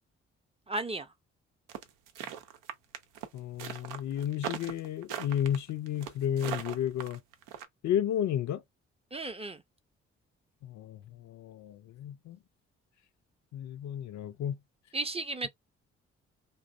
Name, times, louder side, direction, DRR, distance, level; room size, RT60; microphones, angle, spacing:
voice 1, 0.7-1.1 9.1-9.6 14.9-15.5, right 2 dB, 20° right, 0.5 m, -34 dB
sound 1, 1.7-7.7, right 9 dB, 80° right, 0.6 m, -39 dB
voice 2, 3.3-7.2 7.8-8.6 10.6-12.4 13.5-14.5, left 10 dB, 60° left, 0.5 m, -32 dB
2.5 x 2.0 x 2.4 m
hypercardioid pair, 45°, 32 cm